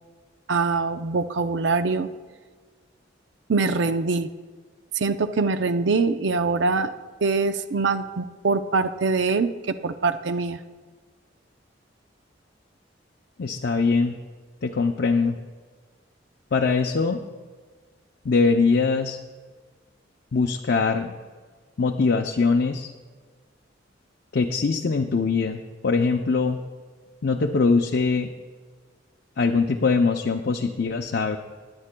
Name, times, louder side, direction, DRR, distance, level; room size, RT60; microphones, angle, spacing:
voice 1, 0.5-2.1 3.5-4.3 4.9-6.9 7.2-9.5 9.8-10.6, right 4 dB, 70° right, 9 dB, 0.5 m, -23 dB
voice 2, 13.4-14.2 14.6-15.4 16.5-17.2 18.2-19.2 20.3-21.1 21.8-22.9 24.3-26.6 27.2-28.3 29.4-31.4, left 4 dB, 60° left, 3 dB, 0.5 m, -22 dB
20.0 x 9.7 x 2.2 m, 1.4 s
head